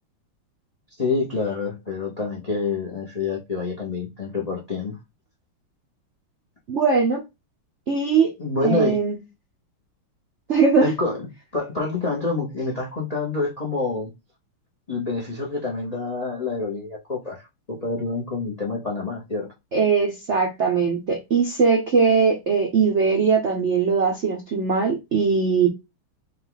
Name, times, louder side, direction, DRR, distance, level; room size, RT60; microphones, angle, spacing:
voice 1, 1.0-5.0 8.4-9.0 10.8-11.3 11.5-14.1 14.9-17.4 17.7-19.5, left 3 dB, 75° left, 0.3 m, -27 dB
voice 2, 6.7-7.2 7.9-8.3 8.6-9.2 10.5-10.9 19.7-25.7, right 5 dB, 70° right, 0.6 m, -20 dB
5.1 x 2.4 x 3.9 m
omnidirectional pair, 2.4 m